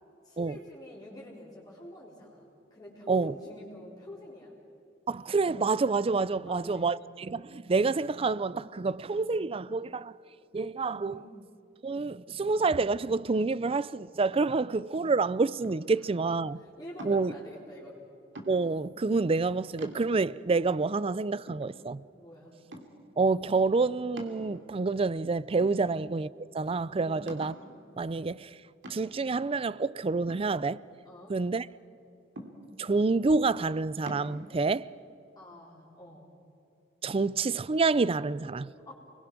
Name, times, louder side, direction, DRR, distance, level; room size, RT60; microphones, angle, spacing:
voice 1, 0.2-4.5 6.4-6.9 11.1-11.4 16.6-18.0 22.2-22.5 25.7-25.9 27.0-27.3 31.0-31.3 35.4-36.3 38.9-39.0, left 1 dB, 20° left, 4.0 m, -47 dB
voice 2, 5.1-10.1 10.5-11.2 11.8-16.6 17.0-17.3 18.5-22.0 23.2-26.3 26.5-27.5 28.0-28.6 28.9-30.8 31.3-31.7 32.8-34.9 37.0-38.7, right 3 dB, 30° right, 0.4 m, -28 dB
sound 1, 15.6-16.1 17.0-17.4 18.3-18.9 19.4-19.5 19.8-20.4 21.0-21.1 21.5-22.2 22.7-23.1 24.2-24.9 25.6-26.2 26.6-26.7 27.3-27.7 28.8-29.3 30.3-31.2 32.4-32.9 34.1-34.3, right 1 dB, 70° right, 2.8 m, -45 dB
29.5 x 21.5 x 6.1 m
head